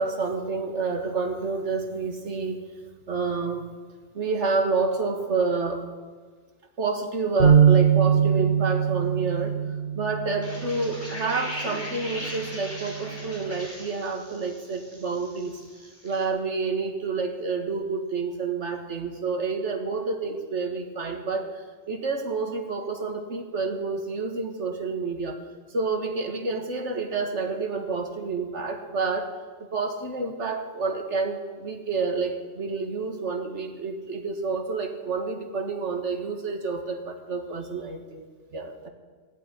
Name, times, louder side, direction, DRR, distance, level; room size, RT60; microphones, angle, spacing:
voice 1, 0.0-2.6 3.1-3.6 4.1-5.9 6.8-9.6 10.0-15.6 16.0-25.4 25.7-29.3 29.7-38.9, right 4 dB, 80° right, 4 dB, 2.0 m, -29 dB
sound 1, 7.4-13.6, right 8 dB, 35° left, 2.4 m, -23 dB
sound 2, 10.4-16.2, left 1 dB, 10° left, 5.7 m, -39 dB
17.0 x 8.4 x 9.7 m, 1.5 s
omnidirectional pair, 1.2 m